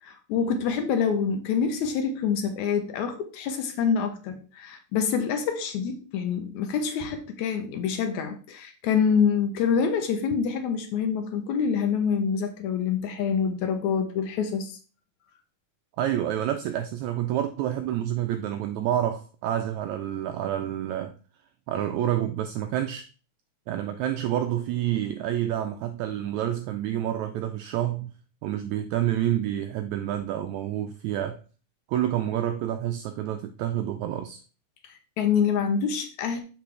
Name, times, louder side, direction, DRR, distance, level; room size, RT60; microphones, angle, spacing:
voice 1, 0.0-14.8 35.2-36.4, left 6 dB, 75° left, 1.9 m, -26 dB
voice 2, 16.0-21.1 21.7-23.1 23.7-28.1 28.4-31.4 31.9-34.4, right 11 dB, 85° right, 1.6 m, -28 dB
6.9 x 5.3 x 3.2 m
omnidirectional pair, 3.7 m